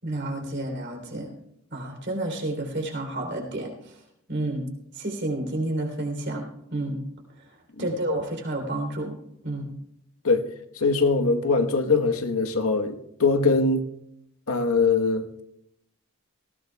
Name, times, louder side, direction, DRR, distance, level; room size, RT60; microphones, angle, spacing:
voice 1, 0.0-1.3 1.7-4.0 4.3-4.7 4.9-6.4 6.7-7.0 7.8-9.1 9.4-9.7, right 1 dB, 55° right, 3.3 m, -30 dB
voice 2, 10.8-13.9 14.5-15.4, left 4 dB, 85° left, 1.1 m, -22 dB
19.5 x 16.5 x 2.3 m
head